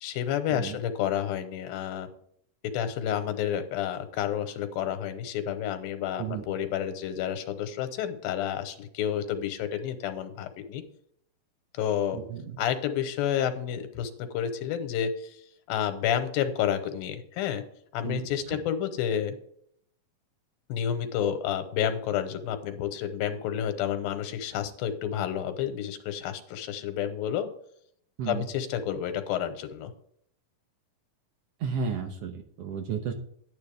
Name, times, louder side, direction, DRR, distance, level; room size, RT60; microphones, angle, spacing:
voice 1, 0.0-2.1 2.6-10.8 11.7-12.2 12.6-15.4 15.7-17.6 17.9-19.4 20.7-27.5 28.3-29.9, left 9 dB, 90° left, 9 dB, 2.8 m, -30 dB
voice 2, 12.1-12.6 18.0-18.6 28.2-28.5 31.6-33.1, right 6 dB, 80° right, 5 dB, 1.4 m, -33 dB
10.5 x 9.3 x 3.5 m, 0.67 s
omnidirectional pair, 4.2 m